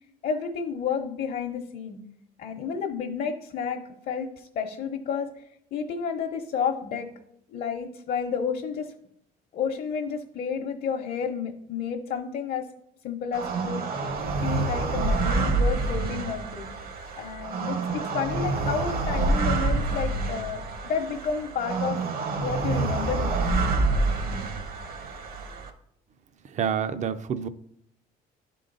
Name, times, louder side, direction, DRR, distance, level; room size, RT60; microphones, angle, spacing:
voice 1, 0.2-2.0 2.4-5.4 5.7-7.1 7.5-8.9 9.5-12.7 13.0-14.0 14.4-16.7 17.2-22.0 22.4-23.6, left 6 dB, 55° left, 2 dB, 0.8 m, -31 dB
sound 1, 13.3-25.7, right 3 dB, 60° right, 1.2 m, -27 dB
voice 2, 26.5-27.5, right 8 dB, 45° right, 12 dB, 0.5 m, -28 dB
11.0 x 3.8 x 3.9 m, 0.73 s
cardioid pair, 110°, 17 cm